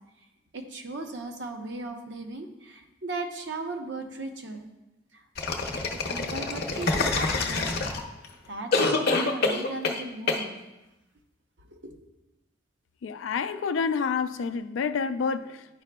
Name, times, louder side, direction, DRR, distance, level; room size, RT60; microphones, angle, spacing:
voice 1, 0.5-4.6 6.1-7.9 8.5-10.5 11.8-11.9, right 2 dB, 70° right, 0.8 m, -37 dB
sound 1, 5.4-8.2 8.7-10.0 10.3-10.4, left 3 dB, 55° left, 0.7 m, -26 dB
voice 2, 13.0-15.8, left 5 dB, 85° left, 0.4 m, -29 dB
10.5 x 4.9 x 2.2 m
head